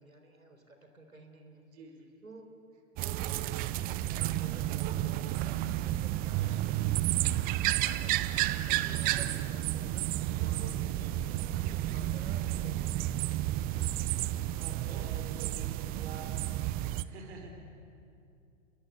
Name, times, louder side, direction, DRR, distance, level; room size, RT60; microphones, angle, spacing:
voice 1, 0.0-1.6 2.2-2.5 3.0-8.2 8.5-10.1 10.3-13.0 13.7-14.0 14.8-15.1 17.1-17.4, right 1 dB, 85° right, 5 dB, 4.2 m, -52 dB
voice 2, 1.7-2.2 11.6-11.9 14.5-16.3 17.0-17.6, right 4 dB, 55° right, 4 dB, 4.5 m, -48 dB
sound 1, 3.0-17.0, right 14 dB, 20° right, 0.7 m, -31 dB
29.0 x 23.0 x 8.5 m, 2.6 s
figure-of-eight pair, 105°, 40 cm